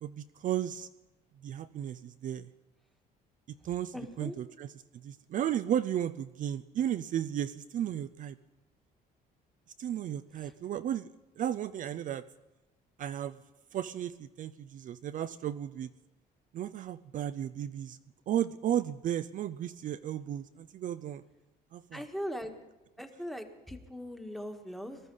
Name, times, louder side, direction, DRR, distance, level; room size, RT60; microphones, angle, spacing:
voice 1, 0.0-0.9 1.4-2.5 3.6-4.7 5.0-8.3 9.8-11.1 11.4-12.3 13.0-13.4 13.7-15.9 16.5-18.0 18.3-21.2 21.7-22.0, right 10 dB, 50° right, 12 dB, 0.5 m, -34 dB
voice 2, 3.9-4.3 10.4-10.5 21.9-22.5 23.0-25.0, equal, ahead, 5 dB, 1.6 m, -40 dB
19.0 x 13.0 x 5.5 m, 1.0 s
cardioid pair, 110°, 17 cm